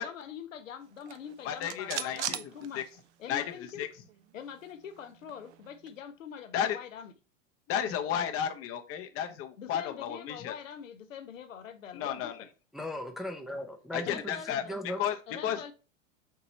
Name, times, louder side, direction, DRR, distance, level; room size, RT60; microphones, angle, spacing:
voice 1, 0.0-2.9 3.2-4.0 4.3-7.2 9.6-12.5 14.0-14.8 15.1-15.7, left 8 dB, 85° left, 0.7 m, -44 dB
sound 1, 0.9-3.4 3.7-3.8 4.1-6.0, right 11 dB, 65° right, 0.6 m, -40 dB
voice 2, 1.4-2.4 2.8-2.9 3.3-3.4 3.8-3.9 6.5-6.8 7.7-10.6 11.9-12.3 13.9-14.6 15.0-15.2 15.4-15.6, left 9 dB, 35° left, 0.7 m, -32 dB
voice 3, 12.7-15.0, left 1 dB, ahead, 0.6 m, -38 dB
4.5 x 2.9 x 4.0 m
hypercardioid pair, 95°, 38 cm